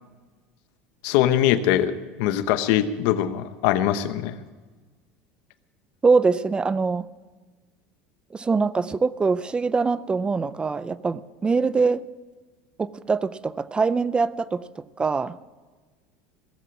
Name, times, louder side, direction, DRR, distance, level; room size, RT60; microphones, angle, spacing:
voice 1, 1.0-4.4, left 11 dB, 70° left, 11 dB, 1.0 m, -22 dB
voice 2, 6.0-7.1 8.3-12.0 12.8-15.4, right 4 dB, 15° right, 17 dB, 0.5 m, -23 dB
17.5 x 7.7 x 8.4 m, 1.3 s
supercardioid pair, 130°, 6 cm